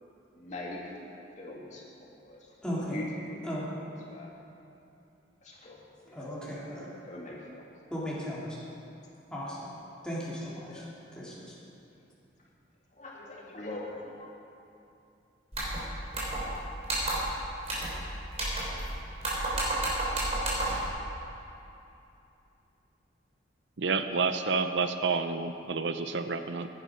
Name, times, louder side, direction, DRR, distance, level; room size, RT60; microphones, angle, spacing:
voice 1, 0.4-0.9 1.4-3.5 3.8-4.3 5.4-5.8 6.1-6.3 6.6-7.6 10.3-10.9 11.4-11.5 12.9-14.3, left 1 dB, 40° left, -3 dB, 2.3 m, -43 dB
voice 2, 2.6-3.0 3.4-3.7 6.1-6.9 7.9-8.5 9.3-9.7 10.0-10.8 11.1-11.3, equal, 5° left, -8 dB, 3.2 m, -36 dB
sound 1, 15.5-15.8 16.1-16.6 16.8-17.3 17.7-18.0 18.3-18.9 19.2-20.9, right 1 dB, 35° right, 3.7 m, -31 dB
voice 3, 23.8-26.7, right 4 dB, 75° right, 9 dB, 0.6 m, -29 dB
16.5 x 11.0 x 5.2 m, 2.8 s
head